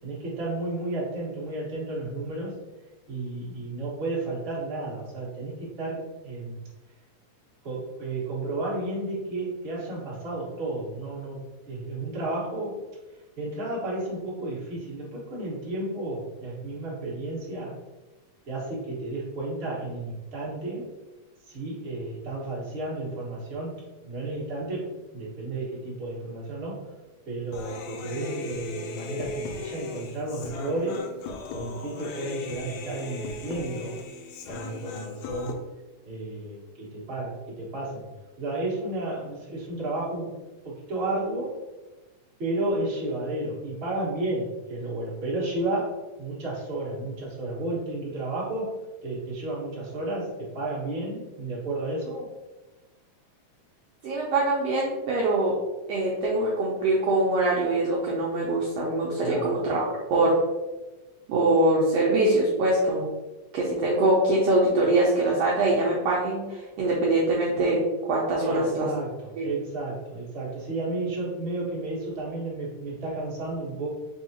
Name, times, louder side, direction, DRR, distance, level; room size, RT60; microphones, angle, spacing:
voice 1, 0.0-2.6 3.1-6.6 7.6-11.4 11.7-12.8 13.4-17.7 18.5-20.9 21.5-26.9 27.3-31.1 31.5-34.0 34.5-35.6 36.0-38.1 38.4-40.3 40.6-41.6 42.4-52.3 59.2-59.5 68.4-73.9, right 2 dB, 45° right, -7 dB, 0.7 m, -32 dB
Human voice, 27.5-35.5, left 4 dB, 80° left, 1.7 m, -38 dB
voice 2, 54.0-55.6 55.9-59.8 60.1-60.4 61.3-63.1 63.5-67.8 68.1-68.9 69.4-69.5, right 2 dB, 80° right, -4 dB, 1.4 m, -23 dB
4.7 x 3.5 x 2.8 m, 1.1 s
omnidirectional pair, 3.7 m